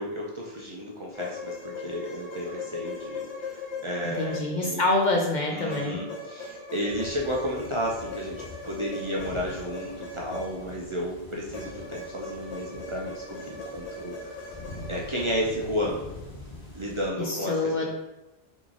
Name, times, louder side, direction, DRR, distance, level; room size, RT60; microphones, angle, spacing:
voice 1, 0.0-4.8 5.5-14.4 14.9-16.1 16.7-17.9, equal, 35° right, -4 dB, 0.5 m, -32 dB
sound 1, 1.1-5.0 5.7-10.9 11.5-15.3, left 3 dB, 90° left, 1.3 m, -39 dB
voice 2, 4.2-6.0 17.2-17.9, left 2 dB, 55° left, 1 dB, 0.6 m, -26 dB
sound 2, 6.9-17.1, left 2 dB, 25° left, 1.3 m, -45 dB
3.6 x 3.2 x 3.7 m, 1.0 s
omnidirectional pair, 1.1 m